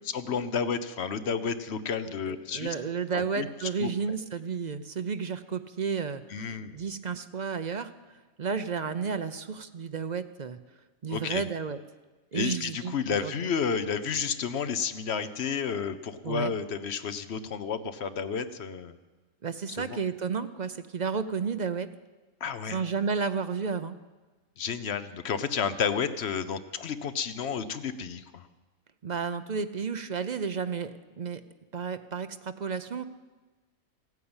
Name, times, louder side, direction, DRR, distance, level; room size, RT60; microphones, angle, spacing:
voice 1, 0.1-2.7 3.1-3.5 3.8-4.2 6.3-6.8 11.1-11.4 12.3-18.9 19.7-20.0 22.4-22.8 24.6-28.4, left 6 dB, 60° left, 11 dB, 1.0 m, -31 dB
voice 2, 2.2-7.9 8.4-10.6 11.0-11.8 12.3-13.5 16.2-16.5 19.4-21.9 22.7-24.0 29.0-31.4 31.7-33.0, right 5 dB, 50° right, 10 dB, 0.6 m, -32 dB
15.5 x 9.4 x 8.8 m, 1.2 s
omnidirectional pair, 1.3 m